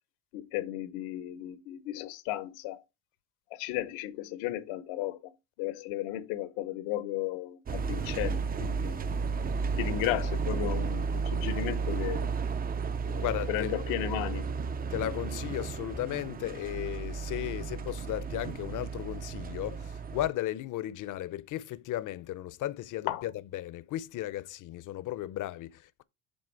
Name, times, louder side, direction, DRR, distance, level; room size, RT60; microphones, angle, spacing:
voice 1, 0.3-2.8 3.5-5.2 5.6-9.0 9.8-12.3 13.1-14.5 23.1-23.2, left 13 dB, 90° left, 1.1 m, -34 dB
sound 1, 7.7-20.3, right 5 dB, 20° right, 0.4 m, -33 dB
voice 2, 13.2-13.7 14.9-26.0, left 14 dB, 45° left, 0.6 m, -35 dB
7.8 x 3.4 x 4.6 m
cardioid pair, 115°, 46 cm